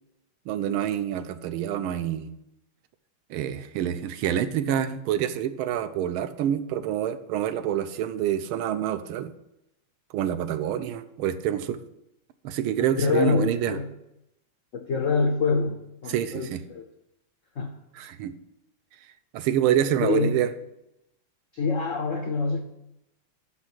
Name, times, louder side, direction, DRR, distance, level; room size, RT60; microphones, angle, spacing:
voice 1, 0.5-2.3 3.3-9.3 10.1-11.8 12.4-13.8 16.1-16.6 18.0-18.3 19.3-20.5, right 10 dB, 80° right, 11 dB, 1.4 m, -27 dB
voice 2, 13.0-13.9 14.7-16.8 17.6-17.8 20.0-20.3 21.5-22.6, left 4 dB, 80° left, 5 dB, 0.7 m, -26 dB
6.3 x 6.1 x 7.4 m, 0.86 s
omnidirectional pair, 2.4 m